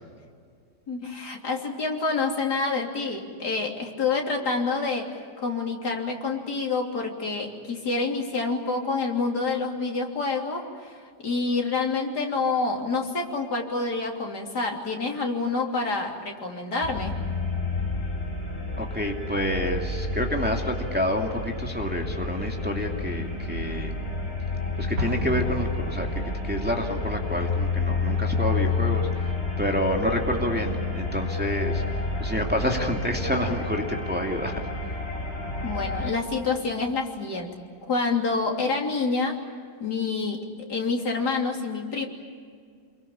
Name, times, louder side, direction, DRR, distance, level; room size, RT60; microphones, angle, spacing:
voice 1, 0.9-5.1 5.4-11.0 11.2-17.1 35.6-37.5 37.9-39.4 39.8-40.4 40.7-42.1, left 4 dB, 65° left, 1 dB, 3.9 m, -27 dB
sound 1, 16.8-36.1, left 3 dB, 35° left, 4.7 m, -30 dB
voice 2, 18.8-23.9 24.8-34.6, equal, 5° right, 1 dB, 2.5 m, -28 dB
Explosion, 25.0-26.8, equal, 70° right, 2.9 m, -34 dB
27.0 x 23.0 x 8.9 m, 2.1 s
omnidirectional pair, 1.9 m